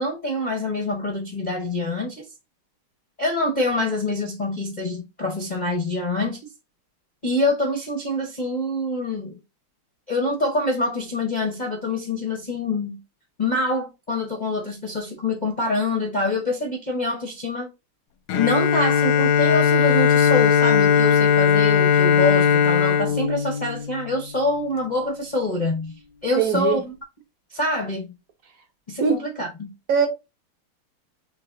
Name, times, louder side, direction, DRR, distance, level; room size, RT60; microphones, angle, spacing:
voice 1, 0.0-2.3 3.2-6.4 7.2-9.4 10.1-13.0 13.4-17.7 18.4-26.9 27.5-28.1 28.9-29.7, left 2 dB, 60° left, 0.4 m, -25 dB
Bowed string instrument, 18.3-24.3, left 7 dB, 90° left, 1.6 m, -18 dB
voice 2, 26.4-26.8 29.0-29.2 29.9-30.1, right 6 dB, 55° right, 1.0 m, -20 dB
3.9 x 3.4 x 3.8 m
omnidirectional pair, 2.4 m